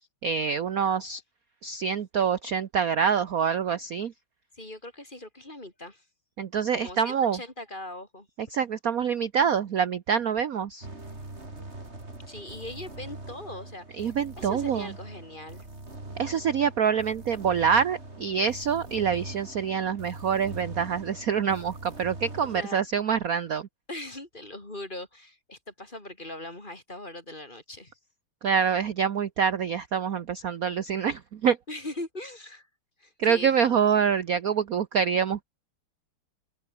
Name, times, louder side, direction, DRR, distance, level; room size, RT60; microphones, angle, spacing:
voice 1, 0.2-1.2 1.6-4.1 6.4-7.4 8.5-10.9 14.0-14.9 16.2-23.7 28.4-31.6 33.2-35.4, right 7 dB, 50° right, 1.2 m, -26 dB
voice 2, 4.5-6.0 6.7-8.3 12.3-15.7 22.4-22.8 23.9-27.9 31.7-32.7 33.0-33.8, left 1 dB, 20° left, 3.9 m, -40 dB
sound 1, 10.8-22.6, right 2 dB, 30° right, 4.9 m, -42 dB
omnidirectional pair, 2.4 m